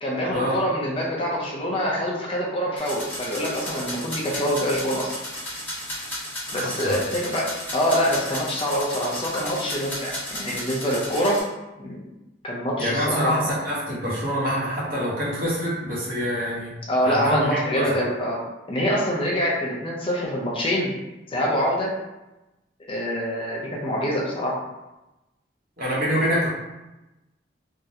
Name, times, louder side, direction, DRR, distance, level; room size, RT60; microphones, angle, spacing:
voice 1, 0.0-5.1 6.5-11.4 11.8-12.0 12.4-13.5 16.9-18.4 18.7-20.9 21.3-21.9 22.9-24.6, equal, 30° left, -4 dB, 0.5 m, -25 dB
sound 1, 2.8-11.4, equal, 10° left, 1.1 m, -34 dB
voice 2, 6.6-7.0 12.8-16.7 17.0-18.0 25.8-26.5, equal, 50° right, -6 dB, 1.0 m, -25 dB
3.6 x 2.1 x 2.7 m, 1.0 s
head